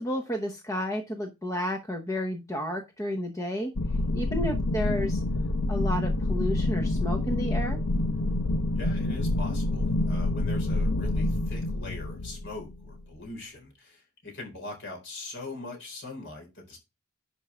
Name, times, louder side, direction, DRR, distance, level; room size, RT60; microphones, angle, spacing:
voice 1, 0.0-3.7 4.1-5.2 5.7-7.8, equal, 15° left, 4 dB, 0.9 m, -31 dB
sound 1, 3.8-13.0, left 2 dB, 80° left, 0.7 m, -27 dB
voice 2, 8.7-16.8, left 3 dB, 55° left, 2 dB, 4.3 m, -41 dB
11.0 x 5.0 x 3.3 m, 0.25 s
head